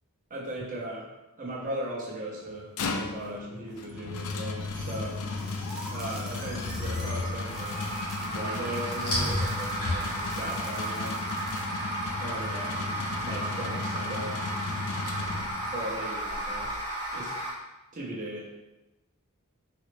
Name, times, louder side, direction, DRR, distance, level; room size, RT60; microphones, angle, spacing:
voice 1, 0.3-1.1 1.4-5.2 5.9-7.8 8.3-11.2 12.2-13.0 13.2-14.4 15.7-16.8 17.1-17.4 17.9-18.6, right 1 dB, 40° right, -5 dB, 0.8 m, -38 dB
sound 1, 2.5-15.9, left 3 dB, 70° left, 0.4 m, -36 dB
sound 2, 4.6-17.5, equal, 90° left, 1.1 m, -33 dB
sound 3, 5.4-11.6, right 1 dB, 5° right, 0.4 m, -48 dB
4.0 x 2.0 x 3.2 m, 1.0 s
head